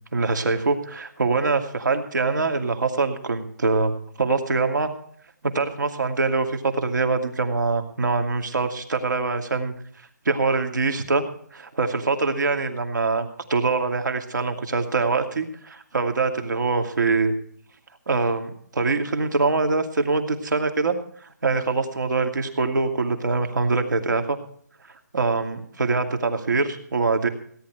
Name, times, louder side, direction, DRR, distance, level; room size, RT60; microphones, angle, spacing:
voice 1, 0.1-4.9 5.5-9.7 10.3-11.2 11.5-17.3 18.1-24.4 25.1-27.3, right 3 dB, 90° right, 6 dB, 2.4 m, -24 dB
17.0 x 10.5 x 4.6 m, 0.62 s
hypercardioid pair, 165°, 10 cm